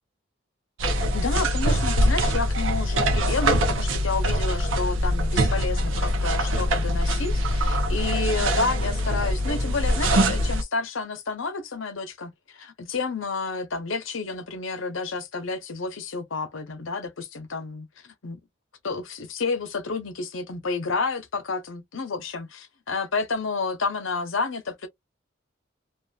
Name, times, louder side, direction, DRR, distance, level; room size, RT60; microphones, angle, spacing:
sound 1, 0.8-10.6, equal, 90° right, 0.6 m, -23 dB
voice 1, 1.1-18.4 18.8-24.9, left 4 dB, 90° left, 0.8 m, -30 dB
2.5 x 2.5 x 2.3 m
head